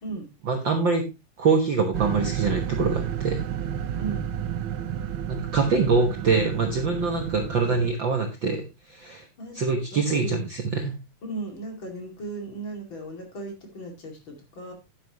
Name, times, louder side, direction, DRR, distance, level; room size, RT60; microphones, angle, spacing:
voice 1, 0.4-1.0 1.4-3.4 5.3-8.6 8.9-9.2 9.5-11.0, right 4 dB, 50° right, 3 dB, 1.5 m, -24 dB
sound 1, 1.9-7.9, right 9 dB, 85° right, 1.1 m, -31 dB
voice 2, 9.9-10.4 11.2-14.7, right 2 dB, 40° left, 3 dB, 3.0 m, -36 dB
10.0 x 9.8 x 2.9 m, 0.25 s
omnidirectional pair, 3.6 m